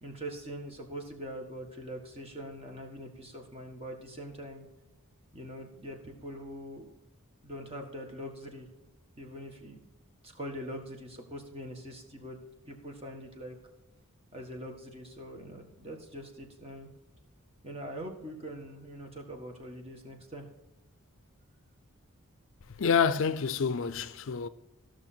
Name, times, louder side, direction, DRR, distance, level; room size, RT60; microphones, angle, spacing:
voice 1, 0.0-4.7 5.3-6.9 7.4-8.7 9.2-9.8 10.2-12.4 12.7-13.6 14.3-16.9 17.6-20.5, equal, 25° right, 1.6 m, -43 dB
voice 2, 22.8-24.5, left 6 dB, 60° left, 0.5 m, -27 dB
15.0 x 6.4 x 4.4 m
head